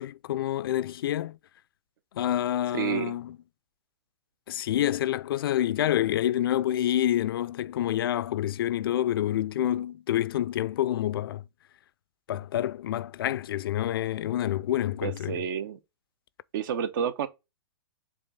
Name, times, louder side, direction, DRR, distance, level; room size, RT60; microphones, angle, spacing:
voice 1, 0.0-1.4 2.1-3.4 4.5-11.4 12.3-15.4, left 12 dB, 65° left, 0.5 m, -27 dB
voice 2, 2.7-3.2 15.0-15.8 16.5-17.3, right 8 dB, 55° right, 1.0 m, -30 dB
7.5 x 2.6 x 5.6 m
hypercardioid pair, 130°, 13 cm